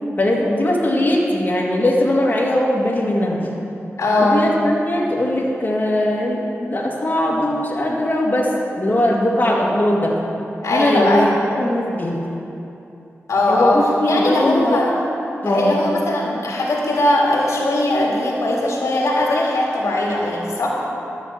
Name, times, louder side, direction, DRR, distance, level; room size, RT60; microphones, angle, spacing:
voice 1, 0.2-3.4 4.2-10.2 10.7-11.3 11.6-12.2 13.5-14.8 15.4-15.8, left 1 dB, 35° left, -4 dB, 2.1 m, -20 dB
voice 2, 4.0-4.4 10.6-11.3 13.3-14.9 15.5-20.7, left 1 dB, 85° left, -3 dB, 2.0 m, -19 dB
12.5 x 6.0 x 8.0 m, 2.8 s
wide cardioid pair, 75°, 5 cm